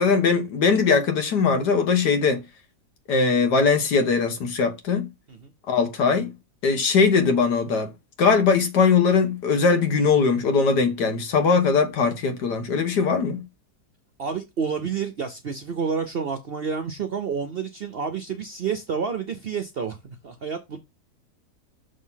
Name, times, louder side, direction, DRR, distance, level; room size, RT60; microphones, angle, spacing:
voice 1, 0.0-2.4 3.1-5.1 5.7-6.3 6.6-7.9 8.2-13.4, left 5 dB, 90° left, 1.8 m, -20 dB
voice 2, 14.2-20.8, right 6 dB, 60° right, 0.6 m, -29 dB
6.4 x 3.3 x 5.6 m
omnidirectional pair, 1.8 m